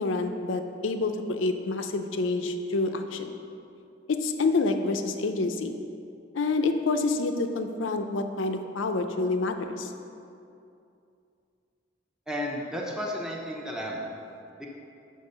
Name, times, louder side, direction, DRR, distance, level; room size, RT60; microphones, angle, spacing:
voice 1, 0.0-3.3 4.1-5.8 6.3-9.9, left 3 dB, 80° left, 7 dB, 0.6 m, -28 dB
voice 2, 12.3-14.1 14.6-14.7, equal, 5° right, -3 dB, 0.7 m, -33 dB
5.4 x 5.3 x 6.6 m, 2.6 s
head